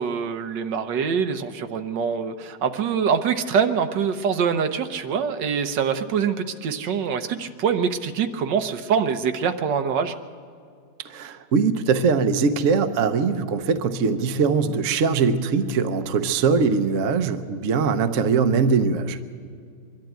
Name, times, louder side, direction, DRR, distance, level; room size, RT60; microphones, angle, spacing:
voice 1, 0.0-10.1, right 6 dB, 80° right, 8 dB, 1.5 m, -24 dB
voice 2, 11.0-19.2, right 5 dB, 55° right, 9 dB, 1.0 m, -21 dB
23.5 x 12.0 x 9.0 m, 2.3 s
omnidirectional pair, 1.9 m